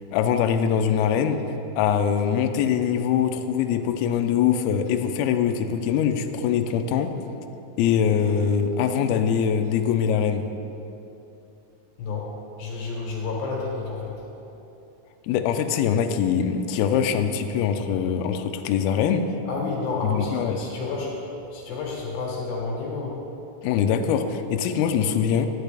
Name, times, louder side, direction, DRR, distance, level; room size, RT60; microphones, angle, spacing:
voice 1, 0.1-7.1 7.8-10.5 15.2-19.3 20.0-20.6 23.6-25.5, left 8 dB, 85° left, 7 dB, 2.1 m, -23 dB
voice 2, 12.0-12.3 12.6-14.2 19.5-23.2, left 3 dB, 65° left, -2 dB, 2.9 m, -30 dB
10.5 x 10.0 x 3.4 m, 2.9 s
omnidirectional pair, 5.0 m